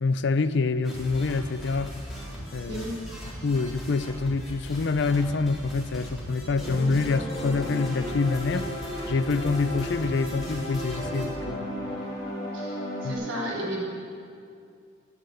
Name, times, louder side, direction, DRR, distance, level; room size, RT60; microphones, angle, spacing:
voice 1, 0.0-2.0 2.5-2.8 3.4-8.7 9.1-11.7 13.0-13.2, left 4 dB, 60° left, 0.5 m, -26 dB
sound 1, 0.8-11.3, equal, ahead, 3.8 m, -39 dB
voice 2, 2.7-3.0 12.5-13.8, equal, 75° right, 3.7 m, -33 dB
sound 2, 6.6-13.1, equal, 20° left, 3.9 m, -34 dB
11.5 x 9.7 x 9.1 m
head